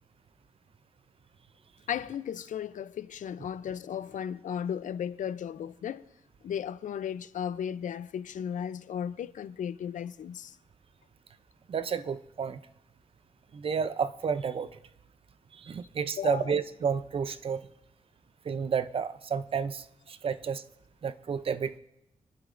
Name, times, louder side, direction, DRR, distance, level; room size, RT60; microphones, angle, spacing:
voice 1, 1.9-6.0 6.4-10.6 16.2-16.5, left 9 dB, 90° left, 0.5 m, -35 dB
voice 2, 11.7-12.6 13.5-14.8 15.5-17.7 18.5-20.6 21.0-21.8, right 6 dB, 45° right, 0.5 m, -31 dB
26.0 x 11.5 x 2.5 m
wide cardioid pair, 155°, 13 cm